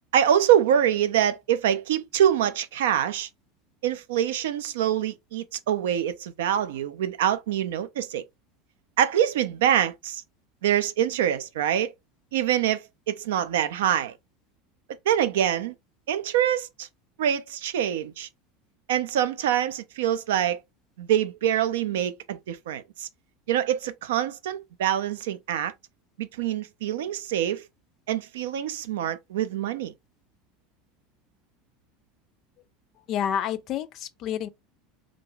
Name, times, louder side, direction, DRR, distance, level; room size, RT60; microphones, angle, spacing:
voice 1, 0.1-3.3 3.8-8.2 9.0-10.2 10.6-11.9 12.3-14.1 15.1-15.7 16.1-16.9 17.2-18.3 18.9-20.6 21.0-23.1 23.5-25.7 26.2-27.6 28.1-29.9, right 10 dB, 65° right, 0.3 m, -25 dB
voice 2, 33.1-34.5, left 9 dB, 45° left, 0.4 m, -29 dB
2.5 x 2.2 x 3.0 m
figure-of-eight pair, 75°, 0 cm